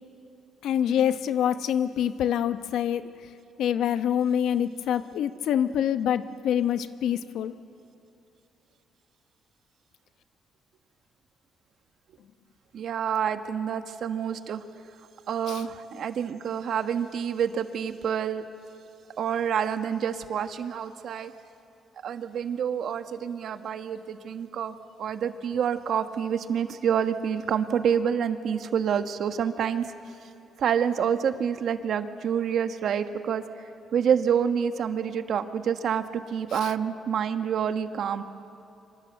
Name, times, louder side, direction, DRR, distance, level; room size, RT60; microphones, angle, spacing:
voice 1, 0.6-3.1 3.6-7.5 15.5-15.6 36.5-36.7, left 9 dB, 80° left, 11 dB, 0.9 m, -26 dB
voice 2, 12.7-14.6 15.3-18.4 19.2-21.3 22.0-29.9 30.6-33.4 33.9-38.2, right 8 dB, 65° right, 9 dB, 1.3 m, -27 dB
27.0 x 25.5 x 8.0 m, 2.9 s
cardioid pair, 90°, 0 cm